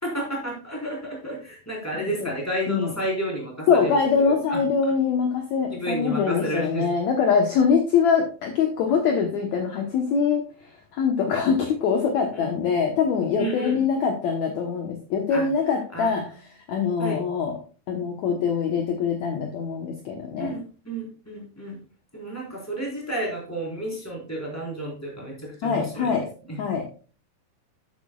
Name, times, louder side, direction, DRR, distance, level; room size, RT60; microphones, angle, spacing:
voice 1, 0.0-4.9 5.7-6.9 12.3-12.5 13.4-13.9 15.3-15.5 15.9-16.3 17.0-17.2 20.4-21.8 22.1-26.2 26.5-26.6, right 1 dB, 5° left, -3 dB, 3.7 m, -31 dB
voice 2, 2.0-2.3 2.7-2.9 3.7-10.4 10.9-16.2 16.7-17.6 17.9-20.6 25.6-26.3 26.6-26.8, left 6 dB, 70° left, 3 dB, 1.8 m, -23 dB
12.0 x 8.4 x 2.4 m, 0.37 s
omnidirectional pair, 4.7 m